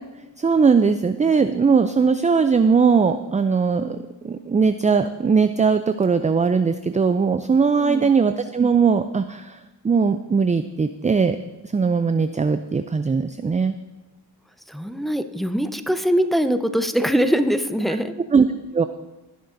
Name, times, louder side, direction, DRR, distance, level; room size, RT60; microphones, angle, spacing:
voice 1, 0.4-9.6 9.8-11.4 11.7-13.8 18.3-18.5 18.7-18.9, right 5 dB, 15° right, 10 dB, 0.4 m, -19 dB
voice 2, 7.7-8.1 14.7-18.1, equal, ahead, 8 dB, 0.8 m, -22 dB
18.0 x 6.5 x 2.6 m, 1.1 s
supercardioid pair, 45°, 46 cm